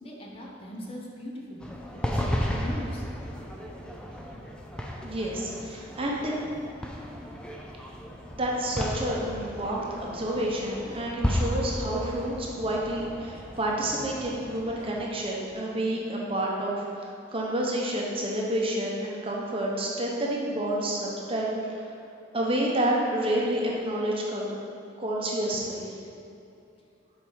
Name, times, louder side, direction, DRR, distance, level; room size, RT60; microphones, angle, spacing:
voice 1, 0.0-3.1, left 1 dB, 30° left, -2 dB, 1.0 m, -40 dB
sound 1, 1.6-15.1, equal, 5° left, 0.5 m, -34 dB
voice 2, 5.0-6.3 8.3-21.9 22.3-24.5 25.0-25.9, right 1 dB, 30° right, -3 dB, 1.0 m, -29 dB
7.5 x 4.8 x 5.6 m, 2.6 s
head